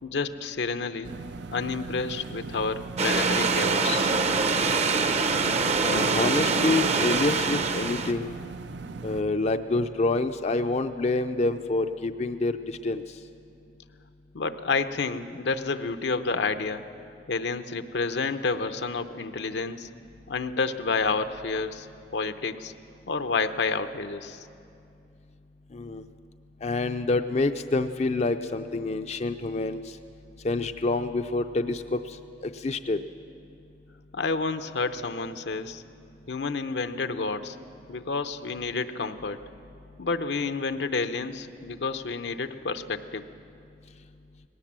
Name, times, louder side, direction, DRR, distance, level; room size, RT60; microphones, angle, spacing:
voice 1, 0.0-1.1 1.5-4.1 14.3-16.9 17.3-19.9 20.3-21.9 22.1-22.7 23.1-24.5 34.1-35.8 36.3-37.6 37.9-39.4 40.0-43.2, left 4 dB, 80° left, 10 dB, 0.8 m, -29 dB
sound 1, 1.0-9.2, right 4 dB, 80° right, 0.5 m, -39 dB
sound 2, 3.0-8.1, right 4 dB, 40° right, 0.7 m, -24 dB
voice 2, 5.8-8.3 9.0-13.0 25.7-26.0 26.6-29.8 30.4-32.0 32.4-33.0, left 2 dB, 40° left, 8 dB, 0.5 m, -27 dB
19.0 x 18.0 x 7.5 m, 2.6 s
head